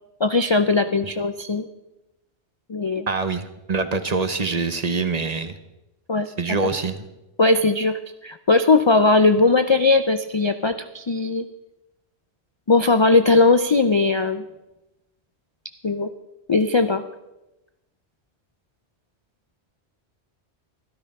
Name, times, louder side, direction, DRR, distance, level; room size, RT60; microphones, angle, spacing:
voice 1, 0.2-1.7 2.7-3.1 6.1-6.3 7.4-11.5 12.7-14.4 15.8-16.1 16.5-17.0, left 3 dB, 45° left, 10 dB, 0.3 m, -19 dB
voice 2, 3.1-5.5 6.4-7.1, right 4 dB, 40° right, 10 dB, 0.9 m, -25 dB
12.5 x 12.5 x 5.3 m, 0.98 s
omnidirectional pair, 1.1 m